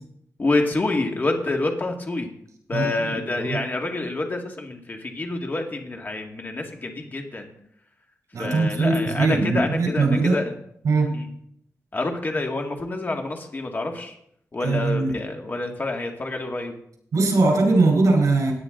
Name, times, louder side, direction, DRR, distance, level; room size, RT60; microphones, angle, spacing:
voice 1, 0.4-2.3 2.7-7.5 8.4-10.5 11.1-11.3 11.9-14.1 14.5-16.7, left 2 dB, 35° left, 2 dB, 2.2 m, -27 dB
voice 2, 2.7-3.6 8.3-10.4 10.8-11.2 14.6-15.1 17.1-18.5, right 3 dB, 75° right, 2 dB, 4.6 m, -21 dB
17.0 x 9.8 x 3.9 m, 0.69 s
wide cardioid pair, 115°, 6 cm